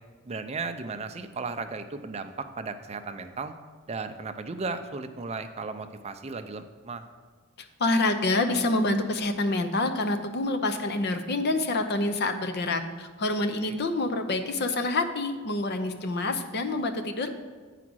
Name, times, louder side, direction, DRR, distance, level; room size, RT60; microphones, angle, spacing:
voice 1, 0.2-3.5 3.9-7.0 13.6-13.8, right 4 dB, 30° right, 8 dB, 0.5 m, -35 dB
voice 2, 7.8-17.3, left 2 dB, 50° left, 7 dB, 0.7 m, -27 dB
8.4 x 5.0 x 6.1 m, 1.4 s
head